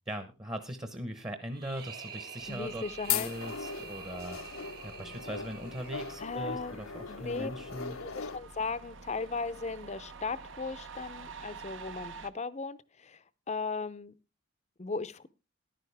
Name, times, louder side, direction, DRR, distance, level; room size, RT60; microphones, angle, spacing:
voice 1, 0.1-8.0, right 1 dB, 20° right, 9 dB, 1.0 m, -40 dB
sound 1, 1.5-6.6, right 7 dB, 50° right, 1.7 m, -47 dB
sound 2, 2.4-12.3, right 4 dB, 65° right, 0.8 m, -49 dB
sound 3, 2.5-8.4, left 8 dB, 85° left, 0.8 m, -38 dB
voice 2, 2.5-3.3 6.2-6.8 7.1-7.5 8.0-14.1 14.8-15.3, left 4 dB, 35° left, 15 dB, 0.6 m, -37 dB
14.0 x 11.0 x 3.4 m, 0.28 s
head